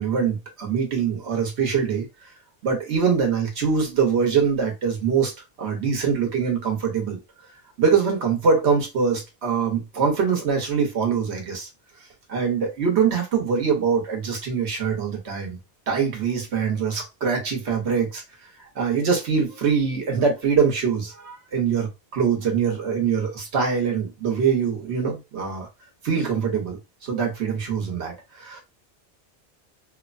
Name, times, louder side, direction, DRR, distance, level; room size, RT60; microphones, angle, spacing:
voice 1, 0.0-2.1 2.6-5.3 5.6-7.2 7.8-11.7 12.3-15.6 15.9-18.2 18.8-25.7 26.0-26.8 27.0-28.6, right 6 dB, 85° right, 1.2 m, -23 dB
2.9 x 2.1 x 2.5 m
omnidirectional pair, 1.1 m